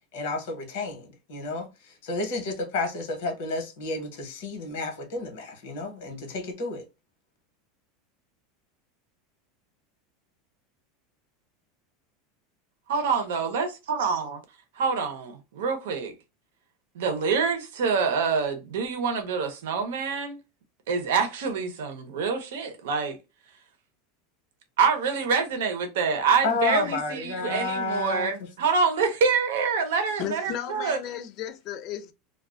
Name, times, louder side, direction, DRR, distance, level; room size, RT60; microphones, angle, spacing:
voice 1, 0.1-6.8 26.4-28.3, left 3 dB, 75° left, 1.0 m, -31 dB
voice 2, 12.9-14.4 14.8-16.1 16.9-20.4 20.9-23.2 24.8-31.0, right 5 dB, 85° right, 0.7 m, -26 dB
voice 3, 30.2-32.1, left 10 dB, 45° left, 0.4 m, -34 dB
2.4 x 2.2 x 2.3 m
supercardioid pair, 145°, 0 cm